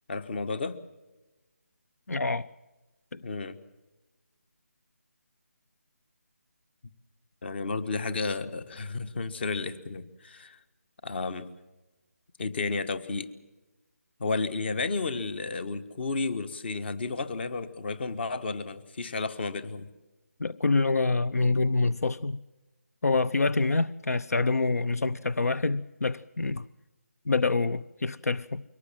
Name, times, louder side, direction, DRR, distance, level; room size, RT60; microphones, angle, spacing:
voice 1, 0.1-0.8 3.2-3.6 7.4-10.6 11.0-11.5 12.4-13.3 14.2-19.9, left 3 dB, 45° left, 1.5 m, -32 dB
voice 2, 2.1-2.5 3.1-3.2 20.4-22.4 23.0-26.7 27.3-28.6, left 3 dB, 80° left, 0.6 m, -26 dB
23.5 x 18.5 x 7.4 m
figure-of-eight pair, 160°, 8 cm